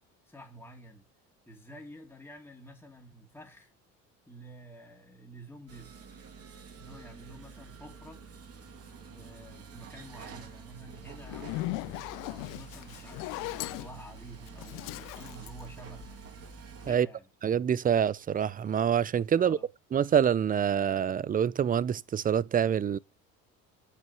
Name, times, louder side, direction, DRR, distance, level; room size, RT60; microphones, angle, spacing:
voice 1, 0.3-1.1 1.4-3.7 4.3-6.0 6.8-8.2 9.1-16.1 16.8-17.3 19.3-19.7, right 1 dB, 5° left, 2.5 m, -49 dB
sound 1, 5.7-17.0, right 5 dB, 50° right, 2.4 m, -48 dB
Zipper (clothing), 11.2-16.4, left 20 dB, 75° left, 0.6 m, -38 dB
voice 2, 17.4-19.6 19.9-23.0, right 8 dB, 25° right, 0.5 m, -26 dB
8.2 x 5.4 x 6.9 m
supercardioid pair, 85°, 32 cm